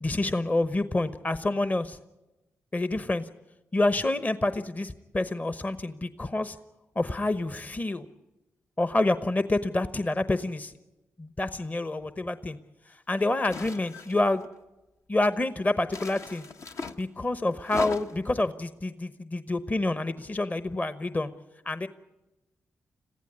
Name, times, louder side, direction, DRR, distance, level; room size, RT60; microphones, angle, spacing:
voice 1, 0.0-2.0 2.7-3.3 3.7-6.6 7.0-8.0 8.8-10.7 11.2-12.6 13.1-14.5 15.1-16.4 17.0-21.3 21.7-21.9, left 2 dB, 30° left, 13 dB, 1.0 m, -28 dB
sound 1, 13.5-14.4 15.9-17.0 17.6-18.3, left 4 dB, 60° left, 1.1 m, -38 dB
22.0 x 15.0 x 9.7 m, 1.0 s
supercardioid pair, 45°, 6 cm